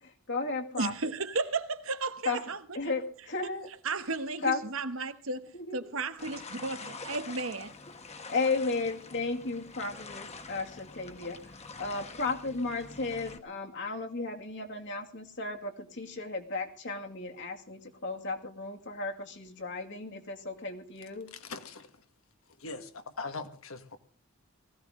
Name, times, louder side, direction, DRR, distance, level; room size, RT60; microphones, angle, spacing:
voice 1, 0.0-1.1 2.3-2.4 2.7-3.7 4.4-4.6 5.5-5.9 8.3-21.3, left 3 dB, 60° left, 2.3 m, -34 dB
voice 2, 0.8-2.6 3.8-7.7, right 3 dB, 70° right, 1.2 m, -34 dB
sound 1, 6.2-13.4, left 4 dB, 30° left, 1.3 m, -46 dB
voice 3, 21.3-21.9 22.6-24.0, left 4 dB, 80° left, 1.8 m, -41 dB
19.5 x 15.5 x 3.8 m
head